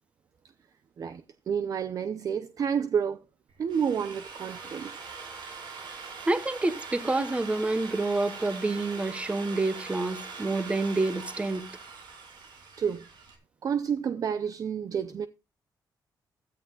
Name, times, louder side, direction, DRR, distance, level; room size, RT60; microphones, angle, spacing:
voice 1, 1.0-3.2 3.6-4.9 12.8-13.0 13.6-15.3, right 7 dB, 50° right, 0.7 m, -29 dB
Drill, 3.5-13.4, right 5 dB, 85° right, 5.2 m, -42 dB
voice 2, 6.3-11.7, right 2 dB, 15° right, 1.4 m, -28 dB
16.0 x 13.5 x 2.4 m
cardioid pair, 130°, 8 cm